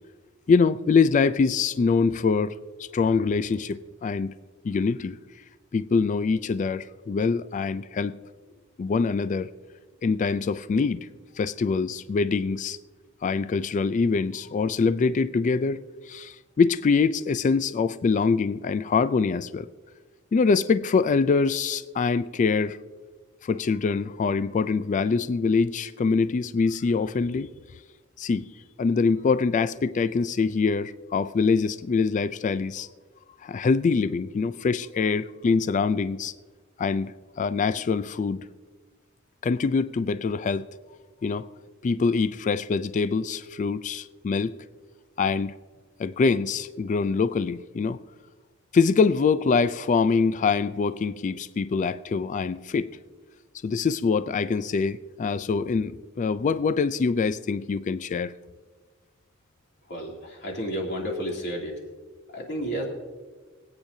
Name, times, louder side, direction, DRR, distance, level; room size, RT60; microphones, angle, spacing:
voice 1, 0.5-2.5 2.8-4.3 4.6-5.2 5.7-8.2 8.8-9.5 10.0-11.1 11.4-12.8 13.2-19.7 20.3-22.8 23.4-27.5 28.2-28.5 28.8-32.9 33.4-36.3 36.8-38.4 39.4-40.7 41.2-41.4 41.8-44.5 45.2-45.6 46.0-48.0 48.7-52.9 53.6-58.3, left 4 dB, 40° left, 0.3 m, -24 dB
voice 2, 59.9-61.7 62.3-62.8, equal, 60° left, 2.8 m, -31 dB
24.5 x 8.8 x 2.7 m
head